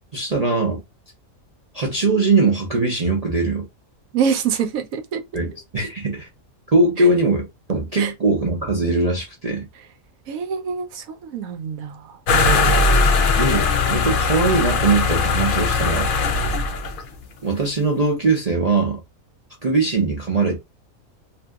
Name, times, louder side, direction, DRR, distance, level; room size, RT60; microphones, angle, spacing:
voice 1, 0.1-0.8 1.7-3.7 5.3-6.3 6.7-9.7 13.4-16.1 17.4-19.0 19.6-20.6, right 3 dB, 40° right, 0.5 m, -21 dB
voice 2, 4.1-5.2 7.0-7.1 8.0-8.1 10.3-12.1, right 7 dB, 75° right, 1.0 m, -25 dB
sound 1, 12.3-17.1, left 3 dB, 65° left, 0.5 m, -19 dB
2.7 x 2.7 x 2.3 m
omnidirectional pair, 1.5 m